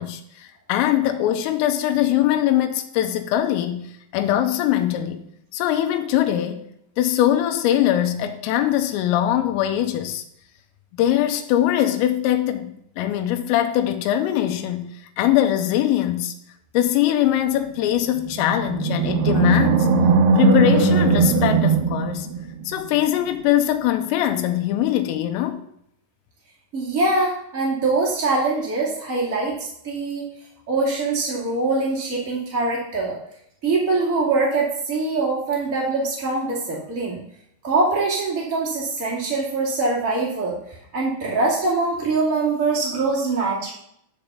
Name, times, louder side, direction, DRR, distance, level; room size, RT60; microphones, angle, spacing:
voice 1, 0.0-5.2 5.5-6.6 7.0-10.2 10.9-16.3 16.8-19.9 20.4-22.3 22.7-25.6, left 12 dB, 85° left, 6 dB, 3.5 m, -22 dB
Animal, 18.2-22.7, right 4 dB, 75° right, 2.4 m, -19 dB
voice 2, 26.7-30.3 30.7-33.2 33.6-37.2 37.6-43.7, right 3 dB, 40° right, -5 dB, 1.1 m, -23 dB
10.5 x 5.4 x 6.7 m, 0.72 s
omnidirectional pair, 6.0 m